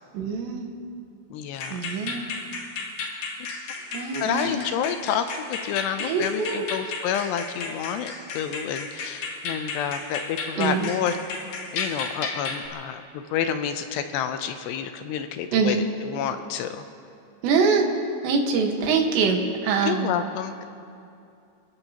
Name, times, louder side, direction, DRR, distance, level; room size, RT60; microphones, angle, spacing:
voice 1, 0.1-0.7 1.7-2.2 3.9-4.6 6.0-6.7 10.6-10.9 15.5-15.8 17.4-17.9 18.2-20.2, right 5 dB, 75° right, 2 dB, 3.7 m, -24 dB
voice 2, 1.3-1.8 4.2-11.2 11.7-16.9 19.8-20.6, left 8 dB, 80° left, 8 dB, 2.7 m, -29 dB
sound 1, 1.5-12.7, left 4 dB, 60° left, 3.1 m, -34 dB
29.0 x 17.0 x 2.9 m, 2.5 s
omnidirectional pair, 5.1 m